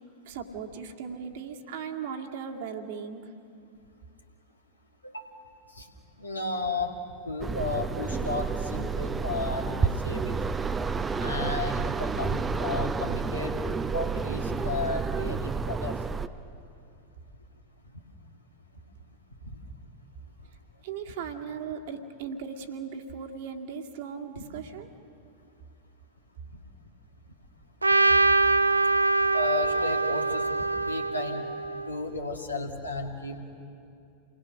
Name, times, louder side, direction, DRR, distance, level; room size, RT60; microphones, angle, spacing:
voice 1, 0.3-3.3 20.8-24.9, right 6 dB, 55° right, 3 dB, 1.9 m, -37 dB
voice 2, 6.2-6.9 7.2-10.4 11.2-13.6 13.9-16.0 19.4-19.6 26.5-26.6 28.2-28.3 29.3-31.5 31.9-33.4, left 3 dB, 85° left, 1 dB, 2.3 m, -33 dB
sound 1, 7.4-16.3, right 5 dB, 15° right, 0.7 m, -30 dB
Trumpet, 27.8-32.0, right 3 dB, 80° right, 0.5 m, -24 dB
29.0 x 20.0 x 6.4 m, 2.6 s
figure-of-eight pair, 90°, 0 cm